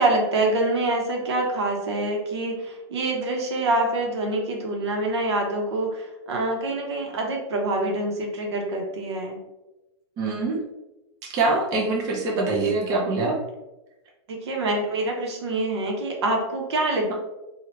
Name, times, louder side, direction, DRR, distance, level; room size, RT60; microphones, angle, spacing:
voice 1, 0.0-9.4 14.3-17.1, right 2 dB, 90° right, 1 dB, 0.9 m, -25 dB
voice 2, 10.2-10.6 11.3-13.3, right 3 dB, 25° right, -3 dB, 0.6 m, -24 dB
3.2 x 2.4 x 2.8 m, 1.0 s
supercardioid pair, 165°, 14 cm